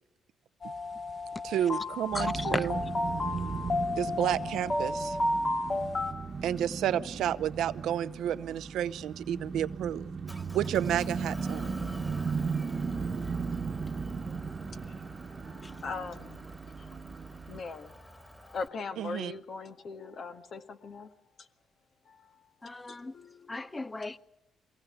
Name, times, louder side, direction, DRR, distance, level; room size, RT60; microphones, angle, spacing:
sound 1, 0.6-6.1, left 2 dB, 35° left, 2.4 m, -32 dB
voice 1, 1.4-2.8 4.0-5.2 6.4-10.1 10.5-11.8 19.0-19.3, right 11 dB, 80° right, 0.7 m, -31 dB
voice 2, 2.1-2.7 15.6-15.7 22.6-23.1 23.5-24.2, left 2 dB, 20° left, 0.8 m, -35 dB
sound 2, 2.1-17.6, right 5 dB, 40° right, 1.3 m, -37 dB
Motor vehicle (road) / Engine, 10.3-18.7, equal, 5° left, 2.3 m, -49 dB
voice 3, 15.4-16.5 17.5-21.1 22.1-22.4 22.9-23.7, left 4 dB, 55° left, 1.8 m, -41 dB
23.0 x 18.0 x 8.1 m
cardioid pair, 90°, 0 cm